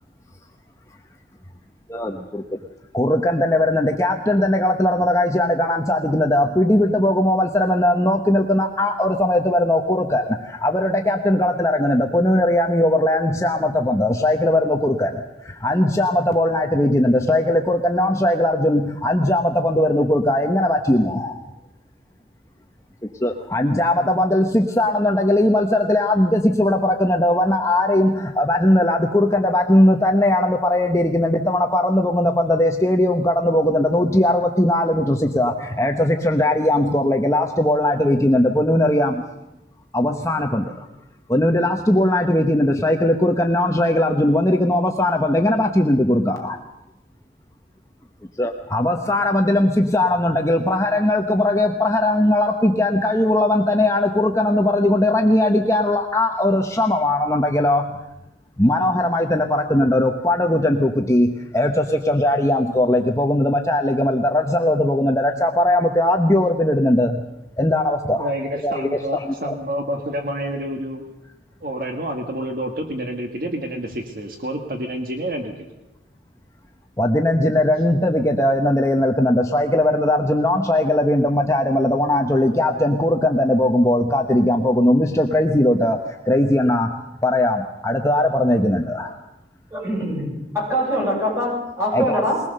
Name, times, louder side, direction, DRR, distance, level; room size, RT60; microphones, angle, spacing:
voice 1, 1.9-2.6 2.9-21.4 23.2-39.3 39.9-40.8 41.3-46.6 48.4-58.0 58.6-67.2 67.6-68.3 68.6-69.6 77.0-86.0 86.3-87.0 87.2-89.2 91.9-92.2, left 1 dB, 15° left, 3 dB, 1.0 m, -19 dB
voice 2, 68.2-71.0 71.6-75.7, equal, 55° right, 4 dB, 1.7 m, -28 dB
voice 3, 89.7-90.3 90.5-92.4, equal, 15° right, -3 dB, 6.9 m, -23 dB
21.5 x 19.0 x 6.7 m, 0.94 s
head